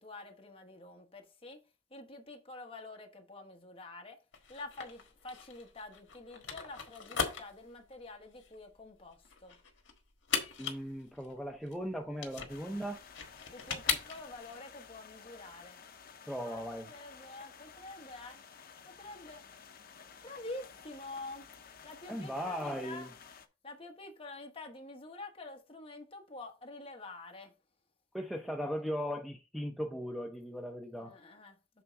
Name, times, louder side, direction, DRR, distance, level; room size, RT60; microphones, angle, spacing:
voice 1, 0.0-1.6 1.9-4.2 4.5-9.6 13.5-15.8 16.3-18.4 19.0-19.5 20.2-21.5 21.8-23.1 23.6-27.5 31.0-31.6, left 2 dB, 30° left, 1.2 m, -47 dB
sound 1, 4.3-14.5, left 7 dB, 70° left, 1.5 m, -39 dB
voice 2, 10.6-13.0 16.3-16.9 22.1-23.1 28.1-31.2, equal, ahead, 0.5 m, -38 dB
sound 2, 12.5-23.5, left 6 dB, 50° left, 0.7 m, -54 dB
7.1 x 3.7 x 5.1 m
head